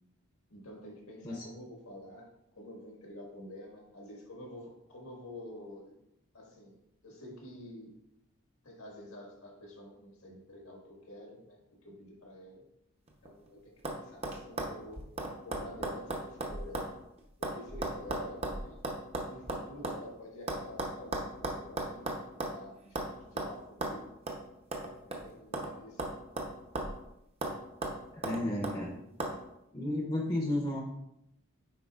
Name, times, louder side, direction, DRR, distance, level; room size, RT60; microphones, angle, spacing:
voice 1, 0.5-2.3 2.6-6.0 6.3-6.8 7.0-7.9 8.6-12.6 13.2-15.1 15.4-16.9 17.4-18.8 19.2-24.1 25.0-26.0, left 1 dB, 85° left, -1 dB, 1.7 m, -49 dB
sound 1, 13.1-13.5 13.8-14.0 14.2-16.9 17.2-20.0 20.5-22.6 23.0-23.1 23.4-23.5 23.8-24.0 24.3-24.4 24.7-25.7 26.0-27.0 27.4-27.6 27.8-28.8 29.2-29.3, right 2 dB, 30° right, 0.7 m, -36 dB
voice 2, 28.1-29.0 29.7-30.8, left 1 dB, 25° left, -1 dB, 0.7 m, -33 dB
9.5 x 4.2 x 2.4 m, 0.81 s
head